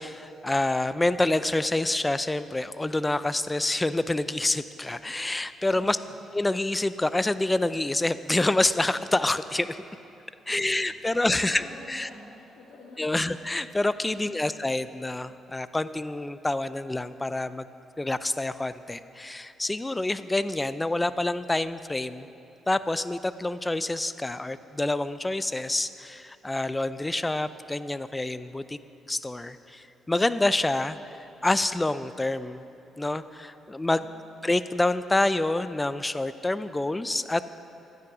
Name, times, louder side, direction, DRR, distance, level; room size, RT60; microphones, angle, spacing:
voice 1, 0.0-6.0 6.3-9.8 10.5-11.6 11.9-12.1 13.0-17.7 18.0-22.3 22.7-28.8 29.1-32.7 33.0-34.1 34.4-37.4, left 2 dB, 15° left, 14 dB, 0.4 m, -27 dB
voice 2, 5.7-6.1 10.5-10.8 11.1-13.4 14.1-14.6 33.9-34.4, left 2 dB, 85° left, -5 dB, 2.2 m, -48 dB
13.0 x 9.7 x 6.1 m, 2.8 s
cardioid pair, 90°, 0 cm